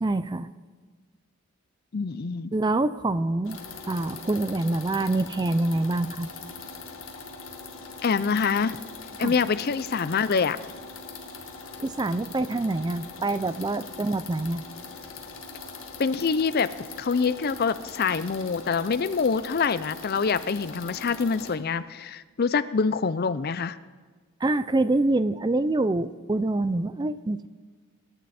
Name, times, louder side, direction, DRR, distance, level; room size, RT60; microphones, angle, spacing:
voice 1, 0.0-0.5 2.5-3.6 3.9-6.3 9.2-9.3 11.8-14.6 24.4-27.5, right 2 dB, 20° right, 14 dB, 0.3 m, -26 dB
voice 2, 1.9-2.5 8.0-8.8 9.2-10.6 16.0-16.7 17.0-23.8, left 5 dB, 45° left, 15 dB, 0.5 m, -25 dB
sound 1, 3.4-21.5, left 4 dB, 65° left, 1.8 m, -41 dB
25.5 x 11.0 x 4.2 m, 1.5 s
head